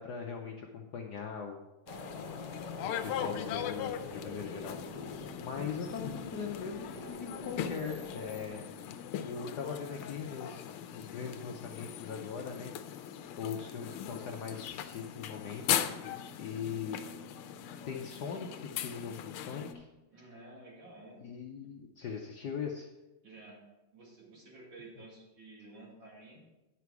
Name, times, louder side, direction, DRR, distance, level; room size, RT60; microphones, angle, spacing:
voice 1, 0.0-1.6 2.8-8.6 9.2-12.7 13.4-15.6 16.4-17.0 17.8-19.9 21.2-22.9, left 6 dB, 65° left, 1 dB, 1.0 m, -40 dB
sound 1, 1.9-19.7, left 10 dB, 85° left, 1.5 m, -39 dB
sound 2, 1.9-8.5, left 1 dB, 20° right, 1.3 m, -46 dB
voice 2, 20.1-21.2 21.6-21.7 23.2-23.6 23.9-26.5, right 2 dB, 60° right, -3 dB, 3.0 m, -52 dB
9.7 x 6.0 x 4.6 m, 1.0 s
omnidirectional pair, 2.4 m